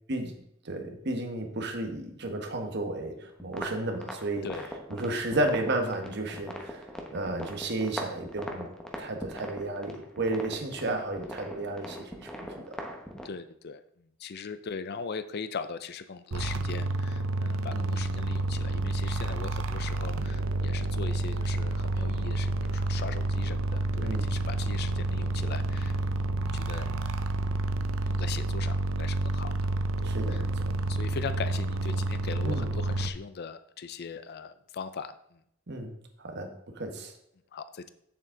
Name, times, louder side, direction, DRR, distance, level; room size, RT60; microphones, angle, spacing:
voice 1, 0.6-4.5 4.9-12.3 12.5-12.8 17.7-17.9 24.0-24.4 30.0-30.7 32.4-32.7 35.7-37.1, right 2 dB, 60° right, 5 dB, 1.2 m, -33 dB
sound 1, 3.4-13.3, equal, 5° left, 1.1 m, -41 dB
voice 2, 13.2-13.8 14.2-26.2 26.5-26.9 28.1-29.5 30.3-30.4 30.9-35.4 37.5-37.9, left 5 dB, 55° left, 12 dB, 0.5 m, -40 dB
sound 2, 16.3-33.1, right 2 dB, 90° right, 0.7 m, -29 dB
8.2 x 7.2 x 3.8 m, 0.73 s
head